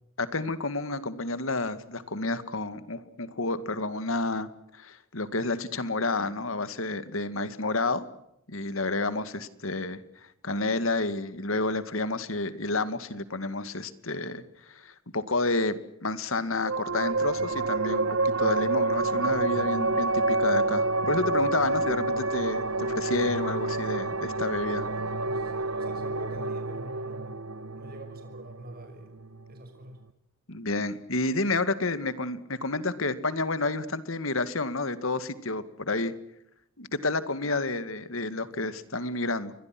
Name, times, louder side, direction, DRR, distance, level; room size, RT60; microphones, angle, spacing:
voice 1, 0.2-4.5 4.7-8.0 8.5-10.0 10.4-24.8 30.5-36.1 36.8-39.5, left 2 dB, 75° left, 13 dB, 2.1 m, -30 dB
sound 1, 16.6-29.5, right 2 dB, 90° right, 1.3 m, -28 dB
voice 2, 24.7-27.4 27.8-29.1 29.5-30.0, right 1 dB, 45° right, 5 dB, 5.6 m, -45 dB
29.5 x 23.5 x 6.1 m, 0.79 s
head